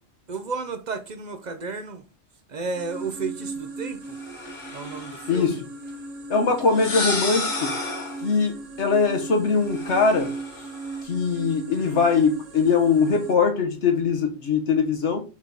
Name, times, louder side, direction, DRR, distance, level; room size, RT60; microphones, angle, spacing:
voice 1, 0.3-2.0 2.5-4.2 4.7-5.6 11.8-12.0, right 4 dB, 45° right, 0.7 m, -33 dB
sound 1, 2.8-13.4, right 3 dB, 90° right, 1.4 m, -38 dB
sound 2, 4.2-5.5 6.6-8.3 9.7-11.0, left 3 dB, 40° left, 1.3 m, -31 dB
voice 2, 6.3-7.7 8.2-10.3 11.0-15.2, left 5 dB, 70° left, 1.2 m, -21 dB
5.7 x 3.9 x 4.6 m
omnidirectional pair, 1.3 m